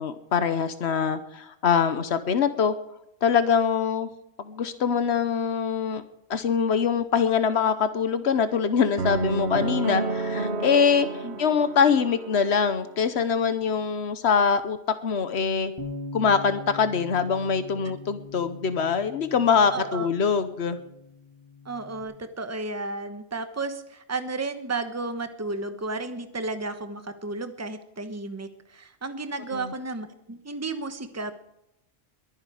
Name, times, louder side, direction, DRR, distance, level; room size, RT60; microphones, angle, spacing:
voice 1, 0.0-2.7 3.2-4.1 4.4-6.0 6.3-14.8 15.0-15.7 16.1-20.8 29.5-29.7, left 6 dB, 85° left, 11 dB, 1.2 m, -24 dB
sound 1, 9.0-13.1, right 2 dB, 85° right, 1.8 m, -30 dB
Bass guitar, 15.8-22.0, left 3 dB, 25° left, 2.4 m, -41 dB
voice 2, 19.7-20.1 21.6-31.4, right 3 dB, 15° right, 9 dB, 1.1 m, -33 dB
22.0 x 9.8 x 5.0 m, 0.83 s
omnidirectional pair, 1.1 m